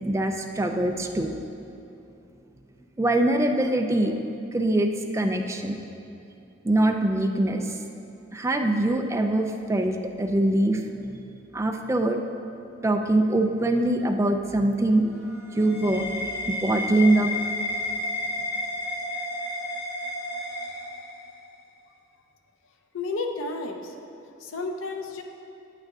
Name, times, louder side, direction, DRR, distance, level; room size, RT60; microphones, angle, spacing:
voice 1, 0.0-1.3 3.0-4.1 4.5-5.8 6.6-7.8 8.3-11.0 11.5-12.2 12.8-15.1 15.5-17.3, right 1 dB, 15° right, 4 dB, 0.3 m, -23 dB
sound 1, 15.0-21.4, left 2 dB, 55° left, 1.5 m, -32 dB
voice 2, 22.9-24.0 24.4-25.2, left 3 dB, 80° left, 4 dB, 0.6 m, -32 dB
9.0 x 8.4 x 2.4 m, 2.8 s
head